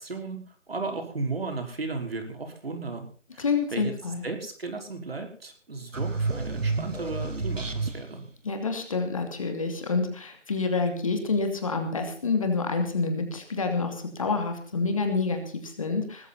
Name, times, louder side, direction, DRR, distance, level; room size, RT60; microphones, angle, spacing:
voice 1, 0.0-3.0 3.3-3.5 3.7-3.9 4.2-8.2, right 3 dB, 50° right, 5 dB, 5.5 m, -35 dB
voice 2, 3.4-4.2 8.4-16.3, left 4 dB, 30° left, 5 dB, 2.8 m, -28 dB
sound 1, 5.9-8.3, right 3 dB, 90° right, 3.4 m, -30 dB
20.5 x 14.5 x 4.3 m, 0.41 s
figure-of-eight pair, 170°, 37 cm